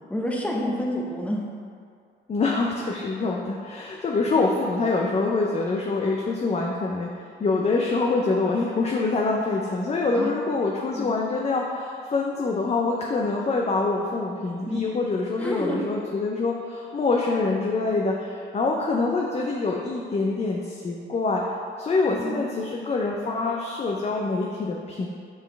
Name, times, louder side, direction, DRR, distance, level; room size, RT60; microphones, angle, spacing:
voice 1, 0.1-1.4 10.1-10.3 10.9-11.1 14.6-14.8 15.4-15.8 22.1-22.5, equal, 5° left, -2 dB, 0.9 m, -28 dB
voice 2, 2.3-7.1 7.4-21.5 21.8-25.1, left 3 dB, 35° left, -1 dB, 0.6 m, -25 dB
7.3 x 4.4 x 3.3 m, 2.2 s
cardioid pair, 90°, 20 cm